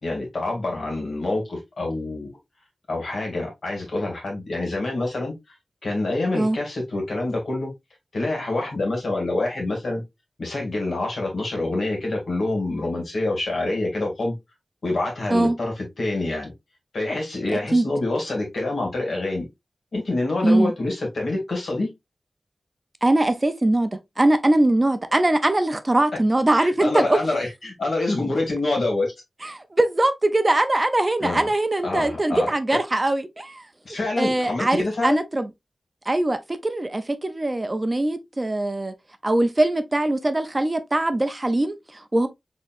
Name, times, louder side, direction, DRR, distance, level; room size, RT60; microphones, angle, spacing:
voice 1, 0.0-2.3 2.9-5.3 5.8-7.7 8.1-10.0 10.4-14.3 14.8-16.5 16.9-19.5 19.9-21.9 26.6-29.1 31.2-31.5 31.8-32.8 33.8-35.2, left 2 dB, 75° left, 2.2 m, -26 dB
voice 2, 23.0-23.9 24.2-27.2 29.4-33.7 34.2-35.5 36.1-38.9 39.2-42.3, right 1 dB, 25° right, 0.5 m, -21 dB
4.5 x 3.6 x 2.4 m
wide cardioid pair, 115°, 0 cm